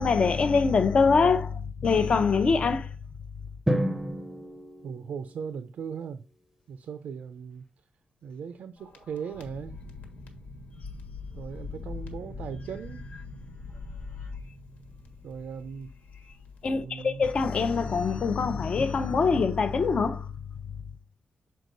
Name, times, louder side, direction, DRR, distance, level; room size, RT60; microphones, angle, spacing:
voice 1, 0.0-3.0 3.3-3.5 16.6-20.9, left 5 dB, 45° left, 0.6 m, -24 dB
Drum, 3.7-5.8, equal, 10° right, 0.6 m, -30 dB
voice 2, 4.8-6.2 6.7-7.6 8.2-9.8 11.4-13.0 15.2-15.9 16.7-17.2, right 7 dB, 80° right, 0.5 m, -38 dB
sound 1, 8.8-18.6, left 4 dB, 75° left, 1.4 m, -43 dB
6.5 x 4.6 x 3.9 m
wide cardioid pair, 165°, 3 cm